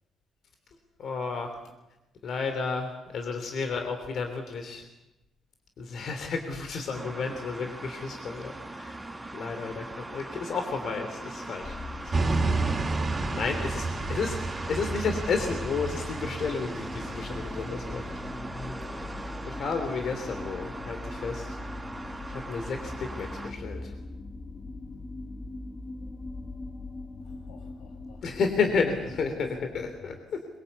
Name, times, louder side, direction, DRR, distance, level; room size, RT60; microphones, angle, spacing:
voice 1, 1.0-1.6 2.2-4.9 5.8-9.0 9.3-12.4 12.8-13.0 13.3-18.1 19.4-21.6 22.3-23.9 28.2-30.4, left 4 dB, 60° left, 5 dB, 3.2 m, -32 dB
sound 1, 6.9-23.5, right 1 dB, 10° right, 4.6 m, -40 dB
sound 2, 11.6-30.0, left 3 dB, 25° left, 1.6 m, -42 dB
sound 3, 12.1-18.2, right 3 dB, 30° right, 3.4 m, -31 dB
voice 2, 13.8-14.1 17.1-17.5 27.2-28.2 29.2-29.4 29.7-30.2, left 3 dB, 90° left, 3 dB, 6.0 m, -49 dB
23.0 x 23.0 x 8.4 m, 0.97 s
cardioid pair, 90°, 0 cm